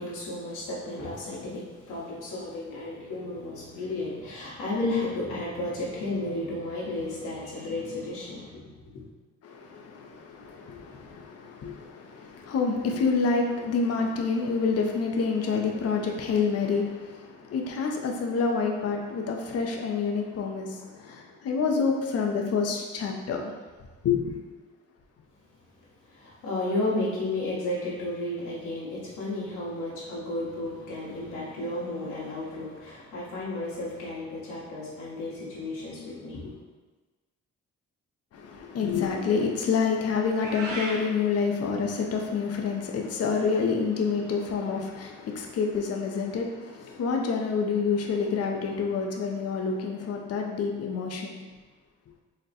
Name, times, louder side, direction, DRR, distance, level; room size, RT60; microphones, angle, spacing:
voice 1, 0.0-9.0 26.0-36.6, left 2 dB, 80° left, -7 dB, 1.2 m, -33 dB
voice 2, 9.4-23.5 24.0-24.4 38.3-51.4, left 5 dB, 55° left, 1 dB, 0.6 m, -28 dB
Meow, 40.3-41.1, right 2 dB, 90° right, 1.3 m, -35 dB
3.9 x 2.2 x 4.1 m, 1.3 s
cardioid pair, 90°, 30 cm